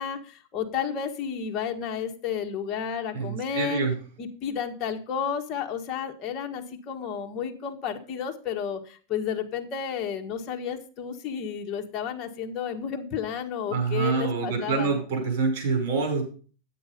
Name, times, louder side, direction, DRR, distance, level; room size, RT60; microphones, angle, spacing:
voice 1, 0.0-3.8 4.2-15.0, left 7 dB, 35° left, 3 dB, 1.6 m, -32 dB
voice 2, 3.1-3.9 13.7-16.3, right 4 dB, 60° right, 2 dB, 5.8 m, -26 dB
9.7 x 8.5 x 5.2 m, 0.39 s
supercardioid pair, 150°, 0 cm